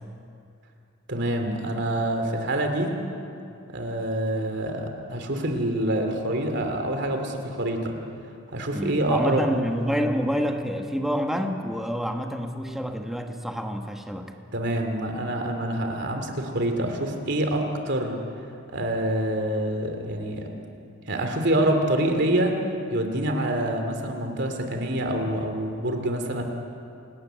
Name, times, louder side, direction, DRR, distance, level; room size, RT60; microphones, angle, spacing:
voice 1, 1.1-3.0 3.7-7.9 8.5-9.6 14.5-18.2 18.7-20.5 21.1-22.6 22.9-26.4, right 1 dB, 60° right, 4 dB, 2.9 m, -26 dB
voice 2, 8.7-14.4, equal, ahead, 4 dB, 1.4 m, -28 dB
28.5 x 13.5 x 9.3 m, 2.6 s
head